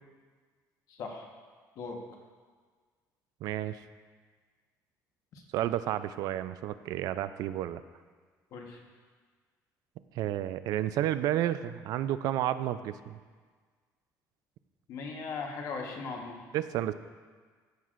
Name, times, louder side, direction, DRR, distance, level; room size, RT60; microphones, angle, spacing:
voice 1, 0.9-1.2 1.8-2.0 8.5-8.8 14.9-16.4, left 4 dB, 55° left, 1 dB, 1.2 m, -38 dB
voice 2, 3.4-3.8 5.5-7.8 10.2-13.2 16.5-16.9, right 12 dB, 70° right, 13 dB, 0.4 m, -31 dB
14.5 x 6.2 x 2.5 m, 1.5 s
cardioid pair, 160°, 7 cm